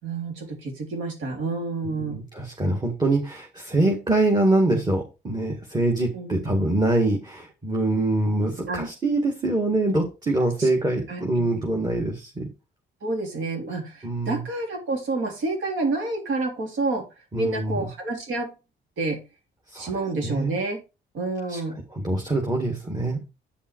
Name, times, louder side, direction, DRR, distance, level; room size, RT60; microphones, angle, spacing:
voice 1, 0.0-2.2 6.1-6.3 8.7-8.8 10.4-10.7 11.1-11.5 13.0-17.1 17.3-18.5 19.0-19.2 19.8-20.8 21.1-21.8, right 3 dB, 80° right, 2 dB, 3.4 m, -29 dB
voice 2, 1.9-12.5 14.0-14.4 17.3-17.9 19.7-19.9 20.2-20.5 21.5-23.2, right 2 dB, 20° right, 1 dB, 2.0 m, -24 dB
8.7 x 5.4 x 4.6 m, 0.28 s
cardioid pair, 90°, 20 cm